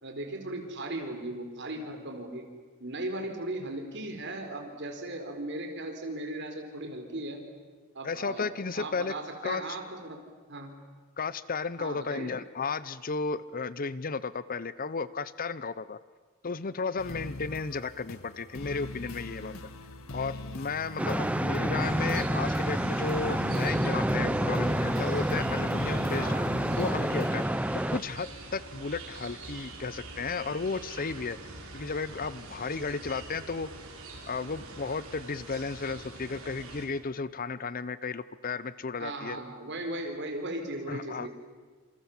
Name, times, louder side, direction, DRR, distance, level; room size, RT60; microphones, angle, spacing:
voice 1, 0.0-2.5 2.8-7.4 7.9-10.2 10.5-10.8 11.8-12.3 26.1-26.5 39.0-41.3, right 1 dB, 55° right, 4 dB, 4.3 m, -37 dB
voice 2, 8.0-9.2 9.4-9.8 11.2-16.0 16.4-19.5 20.1-26.3 26.8-27.4 27.9-31.4 31.7-33.7 34.3-39.4 40.9-41.3, left 4 dB, 40° left, 17 dB, 0.7 m, -34 dB
sound 1, 17.0-27.5, left 2 dB, 75° left, 1.9 m, -41 dB
sound 2, 21.0-28.0, right 1 dB, 5° right, 0.7 m, -28 dB
sound 3, 21.8-36.9, right 2 dB, 75° right, 5.6 m, -45 dB
27.5 x 27.5 x 7.3 m, 1.5 s
head